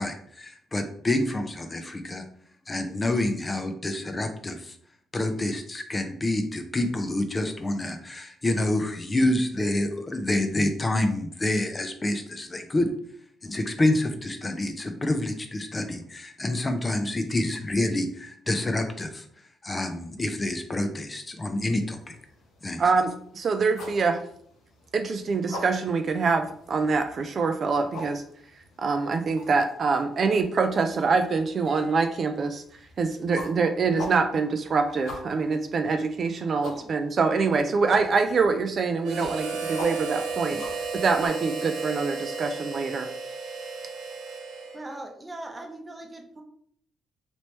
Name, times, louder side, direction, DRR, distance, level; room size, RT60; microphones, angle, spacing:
voice 1, 0.0-2.2 2.7-4.8 5.1-12.9 13.4-19.2 19.6-22.2 22.6-22.8, left 1 dB, 25° left, 6 dB, 0.4 m, -27 dB
sound 1, 22.0-41.3, left 1 dB, 85° left, 1.0 m, -45 dB
voice 2, 22.8-24.2 24.9-28.2 28.8-32.6 33.0-43.1, right 4 dB, 50° right, 6 dB, 0.3 m, -25 dB
Harmonica, 39.0-45.1, right 4 dB, 75° right, 0.8 m, -33 dB
voice 3, 44.7-46.4, right 2 dB, 20° right, 3 dB, 0.7 m, -40 dB
3.1 x 3.0 x 3.0 m, 0.64 s
cardioid pair, 90°, 0 cm